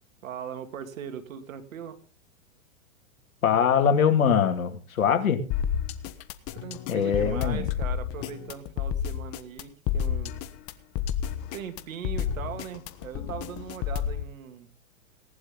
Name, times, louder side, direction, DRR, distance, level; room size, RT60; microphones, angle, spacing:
voice 1, 0.2-2.0 6.5-10.3 11.5-14.7, right 8 dB, 75° right, 8 dB, 2.8 m, -39 dB
voice 2, 3.4-5.4 6.9-7.7, left 7 dB, 90° left, 7 dB, 2.7 m, -22 dB
sound 1, 5.5-14.2, left 9 dB, 35° left, 1.3 m, -30 dB
18.5 x 11.5 x 3.9 m, 0.35 s
hypercardioid pair, 130°, 40 cm